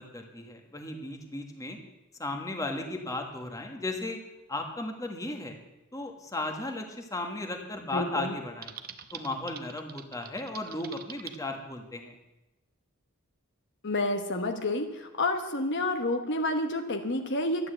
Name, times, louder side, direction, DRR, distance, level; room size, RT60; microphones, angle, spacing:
voice 1, 0.0-1.8 2.2-4.2 4.5-5.6 5.9-8.7 9.1-12.1, left 2 dB, 15° left, 3 dB, 1.5 m, -35 dB
voice 2, 7.9-8.3 13.8-17.7, left 2 dB, 55° left, 5 dB, 1.2 m, -29 dB
Typing, 8.6-11.4, right 8 dB, 40° right, 0.8 m, -44 dB
12.5 x 10.5 x 7.9 m, 1.0 s
head